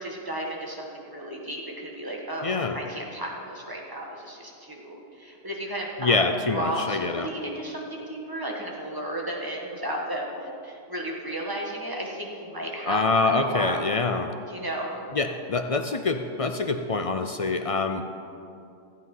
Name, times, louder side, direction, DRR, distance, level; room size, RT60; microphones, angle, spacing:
voice 1, 0.0-6.2 6.5-10.3 10.6-13.0 13.2-13.8 14.5-15.1, right 1 dB, 15° right, -1 dB, 1.6 m, -34 dB
voice 2, 2.4-2.8 6.0-7.3 12.9-14.3 15.1-18.0, left 3 dB, 65° left, 6 dB, 0.3 m, -25 dB
15.0 x 8.2 x 5.5 m, 2.6 s
omnidirectional pair, 1.3 m